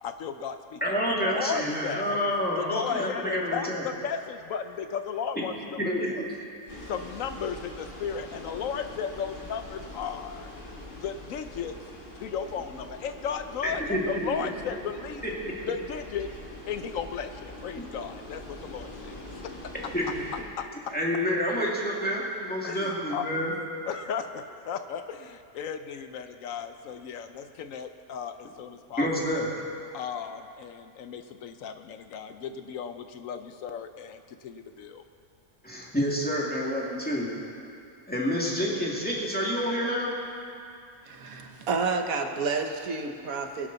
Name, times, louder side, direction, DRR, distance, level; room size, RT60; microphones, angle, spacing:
voice 1, 0.0-0.8 1.1-2.2 2.6-6.1 6.9-11.8 12.2-15.2 15.7-16.3 16.7-19.7 20.6-20.9 22.6-23.3 23.9-29.4 29.9-35.0, left 7 dB, 75° left, 9 dB, 1.0 m, -35 dB
voice 2, 0.8-3.8 5.8-6.2 13.6-14.3 15.2-15.5 17.7-17.8 19.9-20.1 20.9-23.5 29.0-29.5 35.6-37.3 38.1-40.2, equal, 5° left, -4 dB, 2.2 m, -28 dB
sound 1, 6.7-20.4, left 1 dB, 35° left, 2.0 m, -43 dB
voice 3, 41.0-43.7, right 4 dB, 75° right, 5 dB, 1.4 m, -30 dB
21.0 x 11.0 x 4.0 m, 2.4 s
omnidirectional pair, 1.5 m